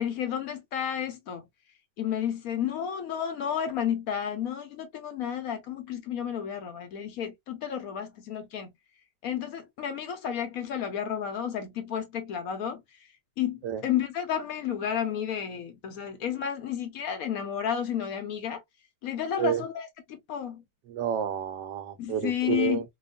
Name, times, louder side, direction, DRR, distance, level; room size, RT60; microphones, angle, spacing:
voice 1, 0.0-1.4 2.0-8.7 9.2-13.1 13.4-18.6 19.0-20.6 22.0-22.8, left 9 dB, 70° left, 0.9 m, -31 dB
voice 2, 20.9-22.8, right 9 dB, 75° right, 1.2 m, -30 dB
2.9 x 2.2 x 2.3 m
omnidirectional pair, 1.9 m